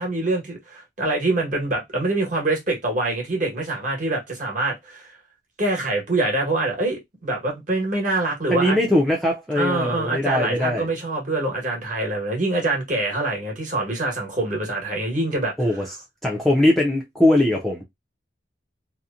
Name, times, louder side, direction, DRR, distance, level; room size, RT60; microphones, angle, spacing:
voice 1, 0.0-5.1 5.6-8.8 9.5-15.5, right 2 dB, 45° right, 1.2 m, -25 dB
voice 2, 8.5-10.9 15.6-15.9 16.2-17.8, left 1 dB, ahead, 0.5 m, -20 dB
2.8 x 2.1 x 2.4 m
head